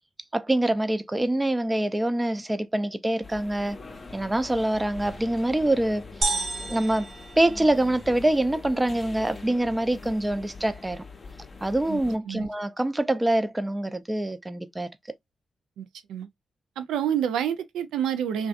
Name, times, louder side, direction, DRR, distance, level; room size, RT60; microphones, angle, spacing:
voice 1, 0.3-3.8 4.1-6.4 6.7-7.1 7.4-11.0 11.6-14.9, right 1 dB, 20° right, 0.5 m, -25 dB
sound 1, 3.2-12.2, left 4 dB, 40° left, 0.6 m, -43 dB
sound 2, 6.2-8.2, right 3 dB, 60° right, 0.8 m, -31 dB
voice 2, 11.9-12.5 15.8-16.3 16.8-18.5, right 9 dB, 85° right, 0.4 m, -28 dB
2.5 x 2.2 x 2.4 m
supercardioid pair, 40°, 0 cm